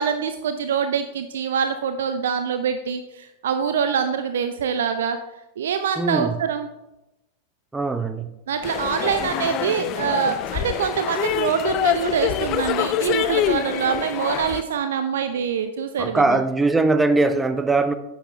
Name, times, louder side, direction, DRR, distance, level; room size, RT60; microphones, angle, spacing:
voice 1, 0.0-5.2 5.6-6.7 8.5-16.4, right 7 dB, 60° right, 0.5 m, -24 dB
voice 2, 6.0-6.4 7.7-8.4 16.0-18.0, right 3 dB, 10° right, 0.7 m, -21 dB
sound 1, 8.6-14.6, left 12 dB, 35° left, 0.4 m, -25 dB
10.0 x 8.0 x 3.4 m
figure-of-eight pair, 90°, 0 cm